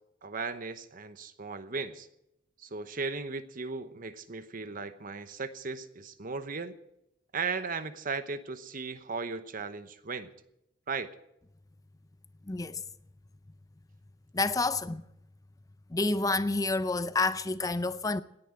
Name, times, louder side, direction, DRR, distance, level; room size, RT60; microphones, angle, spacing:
voice 1, 0.2-2.1 2.6-6.7 7.3-10.3 10.9-11.1, right 4 dB, 45° right, 1.0 m, -36 dB
voice 2, 12.5-12.8 14.3-15.0 15.9-18.2, left 3 dB, 20° left, 0.5 m, -29 dB
18.0 x 10.5 x 7.6 m
head